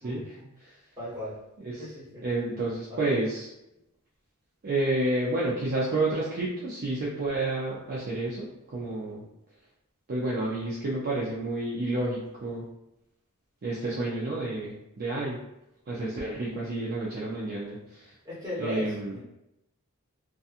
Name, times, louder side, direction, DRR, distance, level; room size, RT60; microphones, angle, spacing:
voice 1, 0.0-0.5 1.0-1.3 1.8-2.2 2.9-3.2 18.2-19.2, equal, 15° right, -8 dB, 1.2 m, -37 dB
voice 2, 2.2-3.5 4.6-9.2 10.1-12.7 13.6-15.4 15.9-18.1 18.6-19.2, right 2 dB, 45° right, -6 dB, 0.4 m, -30 dB
2.7 x 2.3 x 2.4 m, 0.86 s
head